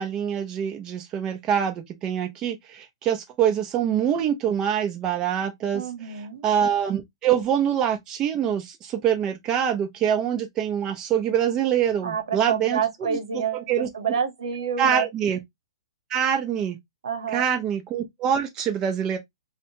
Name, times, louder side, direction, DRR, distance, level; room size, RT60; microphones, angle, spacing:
voice 1, 0.0-5.8 6.4-13.2 13.5-14.1 14.8-15.4 16.1-16.8 17.3-19.2, right 9 dB, 25° right, 0.5 m, -25 dB
voice 2, 5.7-6.4 12.0-15.1 17.0-17.4, right 7 dB, 80° right, 0.9 m, -28 dB
2.7 x 2.1 x 2.7 m
hypercardioid pair, 145°, 3 cm